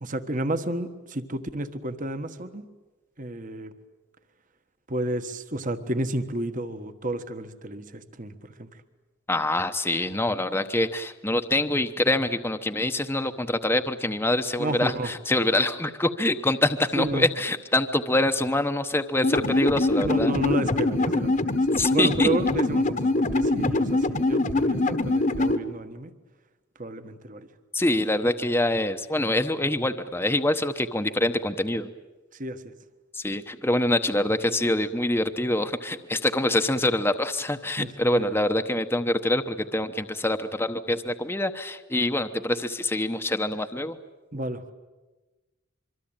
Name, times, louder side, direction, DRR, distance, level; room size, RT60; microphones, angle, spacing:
voice 1, 0.0-2.6 3.2-3.7 4.9-8.3 8.6-8.7 14.6-15.1 16.9-17.2 20.0-21.6 21.9-26.1 26.8-27.5 32.4-32.7 37.8-38.3 44.3-44.7, right 1 dB, 40° right, 10 dB, 1.4 m, -31 dB
voice 2, 9.3-20.3 21.8-22.3 27.7-31.9 33.1-44.0, left 1 dB, 10° left, 8 dB, 0.9 m, -25 dB
sound 1, 19.2-25.6, left 2 dB, 40° left, 1.3 m, -23 dB
25.0 x 24.5 x 9.0 m, 1.2 s
head